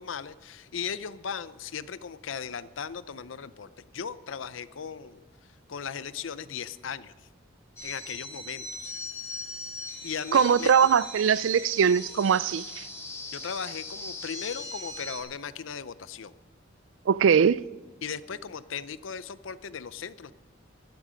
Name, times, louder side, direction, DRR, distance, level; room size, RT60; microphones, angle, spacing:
voice 1, 0.0-5.2 5.7-7.1 7.8-8.9 10.0-10.7 13.3-16.3 18.0-20.3, left 7 dB, 75° left, 0.6 m, -37 dB
sound 1, 7.8-15.2, left 2 dB, 15° left, 3.4 m, -40 dB
voice 2, 10.3-12.8 17.1-17.6, right 7 dB, 80° right, 0.4 m, -21 dB
17.5 x 14.0 x 5.1 m
head